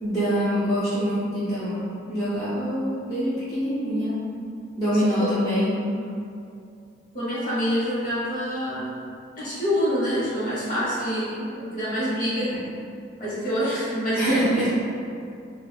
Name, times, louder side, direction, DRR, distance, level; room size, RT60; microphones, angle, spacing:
voice 1, 0.0-4.2 4.8-5.8 14.2-14.7, equal, 20° left, -14 dB, 0.6 m, -25 dB
voice 2, 4.9-5.3 7.1-8.9 9.4-12.5 13.2-14.7, equal, 45° left, -10 dB, 1.2 m, -26 dB
2.6 x 2.5 x 3.3 m, 2.5 s
head